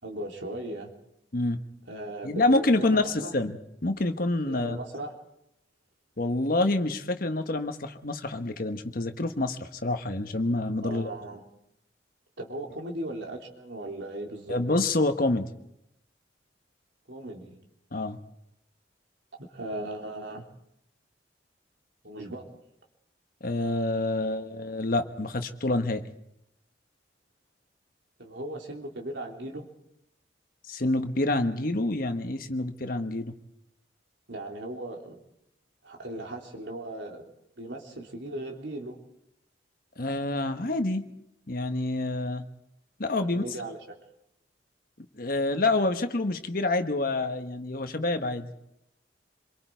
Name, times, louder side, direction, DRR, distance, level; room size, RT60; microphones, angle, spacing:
voice 1, 0.0-0.9 1.9-3.3 4.5-5.1 10.8-11.4 12.4-14.6 17.1-17.6 19.5-20.4 22.0-22.4 28.2-29.6 34.3-35.2 35.8-37.2 37.6-39.0 43.2-44.0, right 1 dB, 75° right, 1 dB, 3.1 m, -37 dB
voice 2, 2.2-3.6 3.8-4.8 6.2-11.1 14.5-15.5 17.9-18.2 23.4-26.0 30.7-33.3 40.0-41.0 41.5-42.5 43.0-43.4 45.2-48.5, left 2 dB, 50° left, 7 dB, 1.3 m, -27 dB
26.5 x 23.0 x 4.6 m, 0.81 s
head